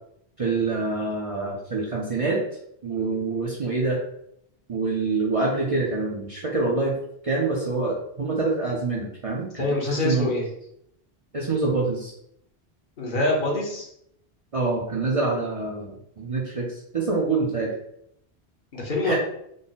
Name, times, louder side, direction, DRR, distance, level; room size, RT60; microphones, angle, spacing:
voice 1, 0.4-2.4 2.8-4.0 4.7-7.0 7.2-9.6 10.0-10.3 11.3-12.1 14.5-17.7 19.0-19.1, right 3 dB, 40° right, -3 dB, 0.5 m, -26 dB
voice 2, 9.6-10.5 13.0-13.9 18.7-19.2, left 2 dB, 55° left, -2 dB, 1.0 m, -25 dB
3.8 x 2.1 x 3.8 m, 0.74 s
omnidirectional pair, 1.1 m